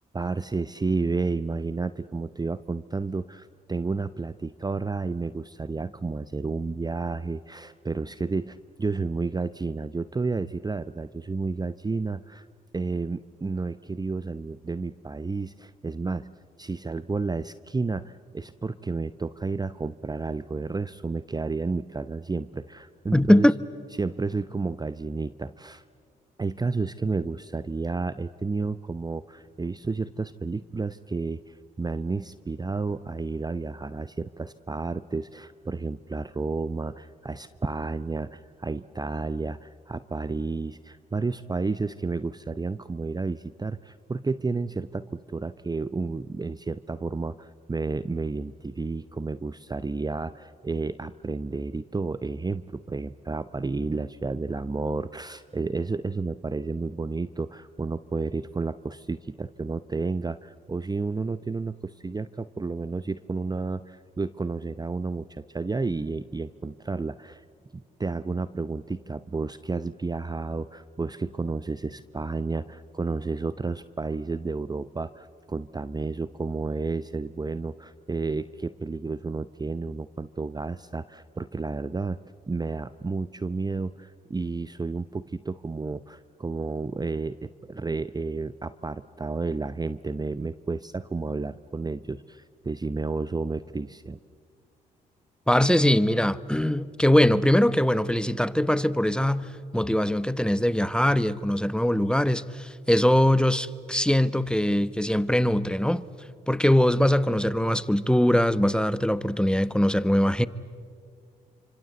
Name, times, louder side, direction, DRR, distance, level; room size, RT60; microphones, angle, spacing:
voice 1, 0.1-12.5 12.7-16.3 16.6-23.5 24.0-25.8 26.4-67.4 67.7-82.2 82.5-94.2, right 3 dB, 20° right, 0.7 m, -31 dB
voice 2, 23.1-23.5 95.5-106.0 106.5-110.5, left 1 dB, 5° left, 1.1 m, -22 dB
28.0 x 25.5 x 8.2 m
hypercardioid pair, 45°, 19 cm